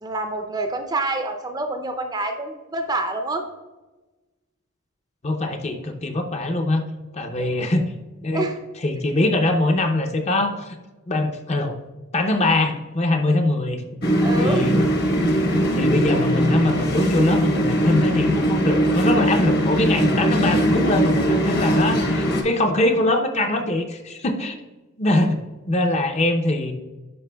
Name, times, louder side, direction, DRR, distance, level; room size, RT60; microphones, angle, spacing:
voice 1, 0.0-3.4 7.4-7.5 8.3-8.6 13.2-13.4 14.2-14.7 15.1-15.3, right 2 dB, 20° right, 6 dB, 0.5 m, -27 dB
voice 2, 5.2-6.8 7.1-7.9 8.2-8.5 8.8-10.8 11.1-11.8 12.1-13.8 14.4-14.8 15.7-24.6 25.0-25.4 25.7-26.7, left 2 dB, 30° left, 5 dB, 0.6 m, -22 dB
sound 1, 14.0-22.4, equal, 50° left, 1.0 m, -20 dB
11.0 x 5.0 x 2.2 m, 1.2 s
head